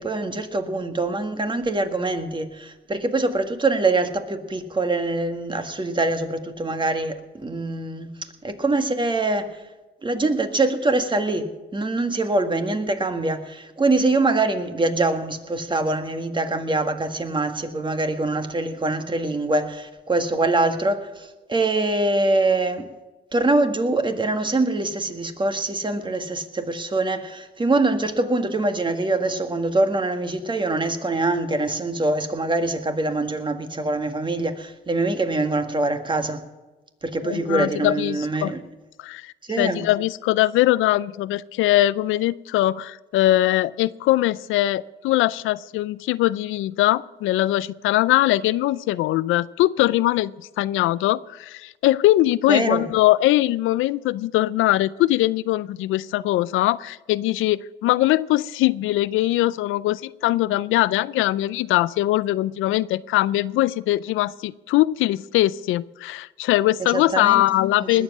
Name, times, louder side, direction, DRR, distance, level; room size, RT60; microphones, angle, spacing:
voice 1, 0.0-8.1 8.4-9.6 10.0-22.9 23.3-36.4 37.0-38.6 39.5-39.9 52.5-52.8 66.8-67.4 67.8-68.0, right 2 dB, 25° right, 7 dB, 1.8 m, -24 dB
voice 2, 37.2-38.5 39.0-68.0, left 16 dB, 90° left, 18 dB, 0.4 m, -21 dB
20.0 x 7.5 x 7.2 m, 1.1 s
cardioid pair, 90°, 20 cm